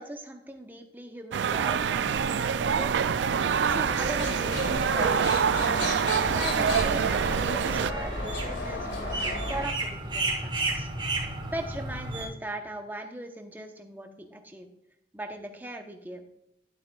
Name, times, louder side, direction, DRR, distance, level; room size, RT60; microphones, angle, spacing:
voice 1, 0.0-2.9 3.4-10.9 11.5-14.7 15.1-16.2, right 1 dB, 10° right, 5 dB, 0.9 m, -40 dB
sound 1, 1.3-7.9, right 7 dB, 75° right, 0.4 m, -26 dB
sound 2, 1.5-12.3, right 2 dB, 25° right, 2.5 m, -36 dB
sound 3, 3.6-9.6, left 1 dB, 80° left, 2.4 m, -34 dB
11.5 x 8.9 x 2.4 m, 0.79 s
head